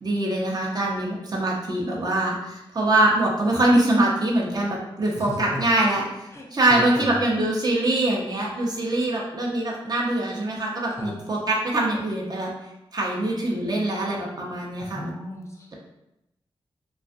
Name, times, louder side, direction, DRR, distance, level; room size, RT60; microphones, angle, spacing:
voice 1, 0.0-12.5 12.9-15.1, right 1 dB, 40° right, -3 dB, 0.7 m, -23 dB
voice 2, 5.2-7.2 11.0-11.2 14.8-15.7, left 1 dB, 30° left, 0 dB, 0.5 m, -36 dB
2.5 x 2.4 x 2.3 m, 0.89 s
cardioid pair, 65°, 10 cm